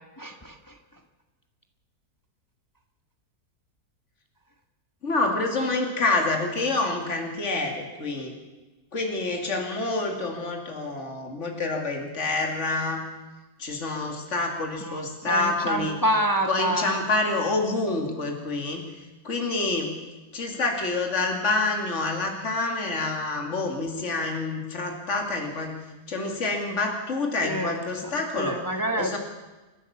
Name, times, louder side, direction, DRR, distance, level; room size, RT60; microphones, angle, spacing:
voice 1, 0.2-0.7 14.8-16.9 27.4-27.8 28.4-29.2, equal, 15° left, 4 dB, 1.4 m, -27 dB
voice 2, 5.0-8.3 8.9-13.0 13.6-16.0 16.5-18.8 19.2-20.0 20.3-25.8 26.1-28.6 29.0-29.2, left 2 dB, 50° left, 2 dB, 2.9 m, -27 dB
30.0 x 12.0 x 7.2 m, 1.2 s
omnidirectional pair, 1.7 m